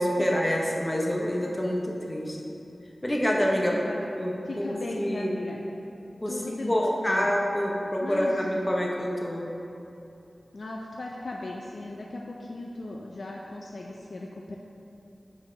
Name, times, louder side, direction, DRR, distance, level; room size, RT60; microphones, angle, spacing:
voice 1, 0.0-2.4 3.0-5.3 6.2-9.4, equal, 20° left, -1 dB, 0.9 m, -27 dB
voice 2, 4.5-5.6 6.3-7.3 8.0-8.6 10.5-14.5, left 2 dB, 65° left, -2 dB, 0.5 m, -37 dB
5.4 x 4.6 x 5.1 m, 2.8 s
wide cardioid pair, 80°, 0 cm